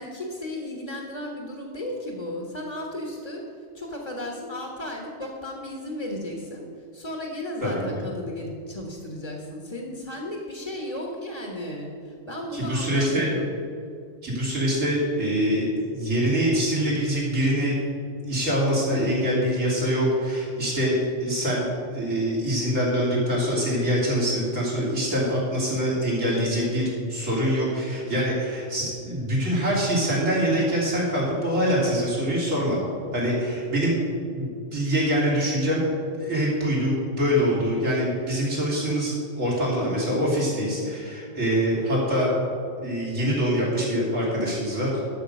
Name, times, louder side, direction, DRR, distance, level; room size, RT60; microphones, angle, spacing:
voice 1, 0.0-13.5 33.3-33.6, left 1 dB, 30° left, 0 dB, 1.2 m, -35 dB
voice 2, 7.6-8.0 12.5-13.3 14.2-17.8 18.3-21.7 21.9-32.8 33.1-34.0 34.3-35.8 36.2-42.3 42.8-44.9, equal, 75° right, -5 dB, 3.5 m, -24 dB
12.0 x 6.9 x 5.3 m, 2.4 s
omnidirectional pair, 1.3 m